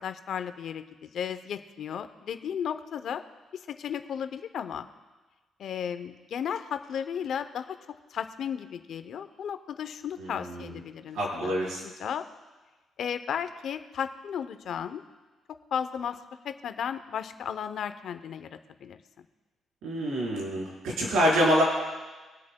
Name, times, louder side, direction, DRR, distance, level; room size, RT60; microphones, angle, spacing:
voice 1, 0.0-3.2 3.5-4.9 5.6-7.8 8.1-12.3 13.0-15.0 15.7-16.2 16.4-19.0, left 8 dB, 65° left, 10 dB, 0.7 m, -34 dB
voice 2, 10.2-10.8 11.1-11.8 19.8-21.6, equal, 80° right, -4 dB, 4.1 m, -26 dB
24.5 x 8.3 x 2.2 m, 1.2 s
cardioid pair, 90°, 0 cm